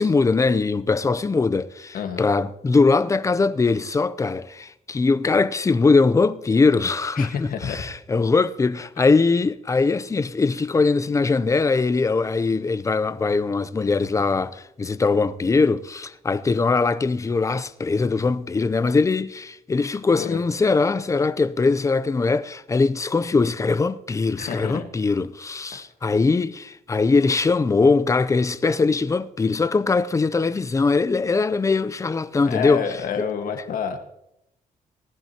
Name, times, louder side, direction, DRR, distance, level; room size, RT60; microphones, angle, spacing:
voice 1, 0.0-32.8 33.2-33.3, left 4 dB, 20° left, 0.5 m, -21 dB
voice 2, 7.1-7.8 9.0-9.1 20.2-20.4 24.4-24.8 25.7-25.8 32.4-34.0, left 7 dB, 70° left, 1.6 m, -29 dB
19.0 x 11.0 x 2.9 m
cardioid pair, 115°, 15 cm